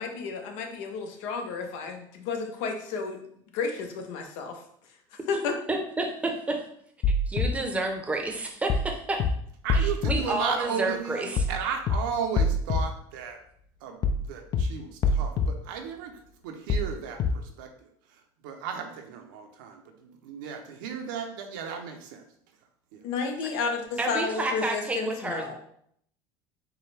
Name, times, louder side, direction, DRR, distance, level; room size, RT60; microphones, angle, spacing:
voice 1, 0.0-3.2 3.5-4.6 5.3-5.6 23.0-25.6, left 4 dB, 75° left, 4 dB, 0.8 m, -31 dB
voice 2, 5.7-6.6 7.3-9.3 9.7-11.5 24.0-25.6, right 2 dB, 15° right, 3 dB, 0.7 m, -30 dB
sound 1, 7.0-7.5 8.7-8.9 9.2-9.3 9.7-10.1 11.4-11.6 11.9-12.0 12.4-12.8 14.0-14.2 14.5-14.6 15.0-15.5 16.7-16.9 17.2-17.3, left 3 dB, 40° left, 0.4 m, -24 dB
voice 3, 9.6-11.2 11.5-13.4 13.8-17.7 18.4-22.2 22.9-23.0, right 7 dB, 85° right, 4 dB, 0.7 m, -34 dB
4.6 x 2.2 x 3.3 m, 0.68 s
supercardioid pair, 110°, 10 cm